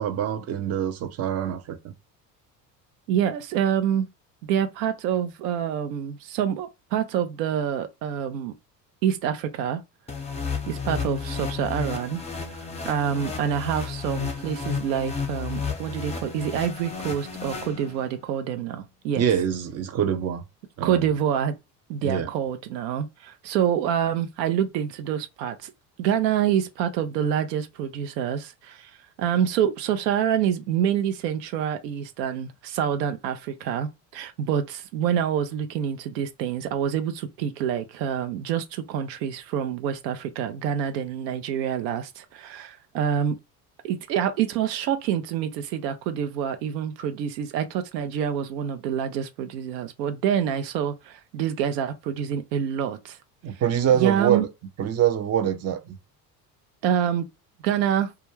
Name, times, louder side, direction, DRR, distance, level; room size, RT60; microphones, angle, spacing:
voice 1, 0.0-1.9 19.2-20.4 20.8-21.1 22.0-22.3 53.4-54.5 54.8-56.0, right 9 dB, 30° right, 0.6 m, -25 dB
voice 2, 3.1-4.1 4.5-8.5 9.0-9.8 10.7-12.2 12.5-19.2 20.8-21.5 21.9-25.7 26.0-28.9 29.2-43.4 43.8-53.2 53.9-54.5 56.8-57.3 57.6-58.1, right 9 dB, 80° right, 0.6 m, -26 dB
sound 1, 10.1-18.3, left 5 dB, 15° left, 0.7 m, -32 dB
2.3 x 2.1 x 3.1 m
hypercardioid pair, 70°, 49 cm